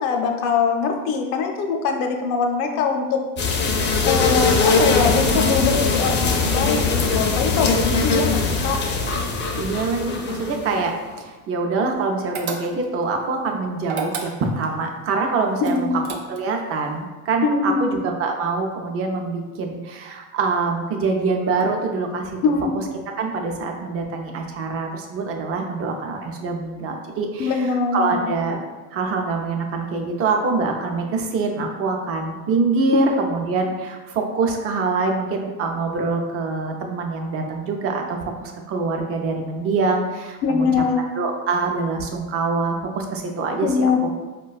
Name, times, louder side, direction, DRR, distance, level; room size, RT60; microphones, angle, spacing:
voice 1, 0.0-3.2 4.0-8.8 15.6-15.9 17.4-17.9 22.4-22.7 27.4-28.3 32.9-33.1 40.4-41.0 43.6-44.0, left 5 dB, 75° left, 3 dB, 0.6 m, -22 dB
sound 1, 3.4-10.9, left 4 dB, 30° left, 0.4 m, -21 dB
voice 2, 9.6-15.9 16.3-22.4 23.2-27.7 27.9-28.6 28.9-40.7 41.2-44.1, right 3 dB, 35° right, 3 dB, 0.5 m, -24 dB
sound 2, 12.3-13.0 13.8-14.7 15.6-16.6, right 5 dB, 85° right, 0.6 m, -31 dB
4.4 x 2.2 x 2.3 m, 1.2 s
supercardioid pair, 115°, 40 cm